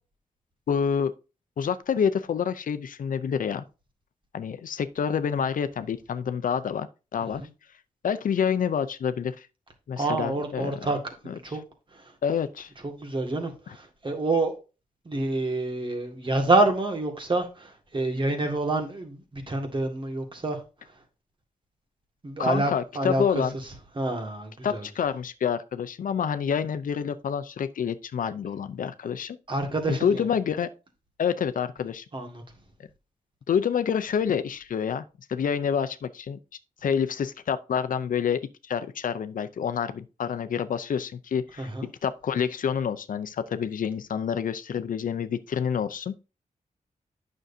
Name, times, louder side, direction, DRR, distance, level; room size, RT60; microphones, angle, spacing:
voice 1, 0.7-1.1 1.6-3.6 4.3-6.9 7.1-7.4 8.0-9.5 9.9-10.7 11.3-11.4 12.2-12.7 22.4-23.5 24.6-29.4 29.9-30.7 31.2-32.0 33.5-35.0 35.3-36.4 36.8-46.2, left 7 dB, 75° left, 0.6 m, -28 dB
voice 2, 10.0-11.0 11.2-11.6 11.9-12.1 12.8-14.5 15.1-20.6 22.2-23.4 24.0-24.9 29.5-30.3 32.1-32.4 41.6-41.9, right 2 dB, 35° right, 1.9 m, -27 dB
9.1 x 6.3 x 2.7 m
wide cardioid pair, 105°, 14 cm